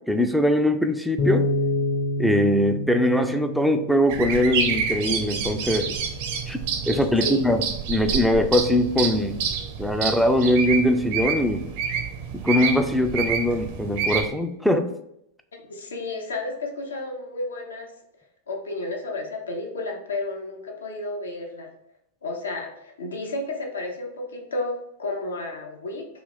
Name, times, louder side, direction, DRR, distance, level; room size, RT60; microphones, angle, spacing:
voice 1, 0.0-1.5 2.2-6.0 6.5-6.6 6.9-9.4 9.8-11.6 12.3-14.9, left 1 dB, ahead, 6 dB, 0.3 m, -22 dB
sound 1, 1.2-7.4, left 2 dB, 45° left, 1.0 m, -29 dB
sound 2, 4.1-14.3, right 6 dB, 50° right, 0.5 m, -28 dB
voice 2, 15.7-17.9 18.5-21.7 22.2-26.1, left 2 dB, 70° left, 2 dB, 0.7 m, -32 dB
3.5 x 2.4 x 3.5 m, 0.78 s
figure-of-eight pair, 90°, 0 cm